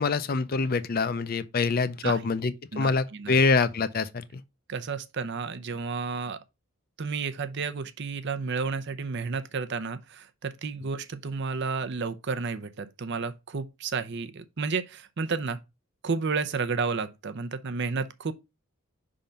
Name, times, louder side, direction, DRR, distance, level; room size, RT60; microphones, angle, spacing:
voice 1, 0.0-4.4, left 4 dB, 45° left, 0.5 m, -25 dB
voice 2, 2.7-3.4 4.7-6.4 7.0-15.6 16.0-18.3, right 4 dB, 55° right, 0.6 m, -31 dB
5.6 x 3.7 x 5.2 m
head